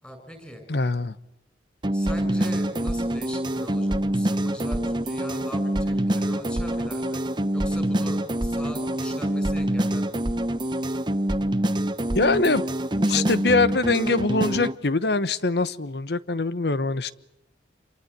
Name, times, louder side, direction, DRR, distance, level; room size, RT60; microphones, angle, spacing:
voice 1, 0.0-0.6 1.9-7.2 7.5-10.2, equal, 10° left, 6 dB, 6.6 m, -40 dB
voice 2, 0.7-1.2 12.1-12.6 13.1-17.1, left 3 dB, 65° left, 16 dB, 1.0 m, -23 dB
sound 1, 1.8-14.8, right 1 dB, 25° right, 1.0 m, -25 dB
27.5 x 23.5 x 8.2 m, 0.85 s
head